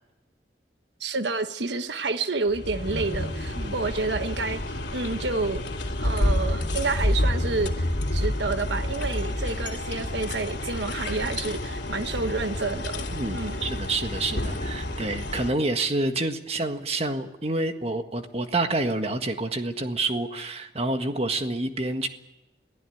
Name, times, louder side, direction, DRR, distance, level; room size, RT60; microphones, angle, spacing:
voice 1, 1.0-4.6 4.9-5.6 6.0-13.1 13.3-13.7, right 3 dB, 80° right, 9 dB, 1.2 m, -29 dB
sound 1, 2.5-15.5, left 1 dB, 80° left, 2.7 m, -29 dB
voice 2, 13.1-22.1, right 2 dB, 35° right, 7 dB, 1.6 m, -28 dB
23.0 x 15.0 x 9.2 m, 1.0 s
head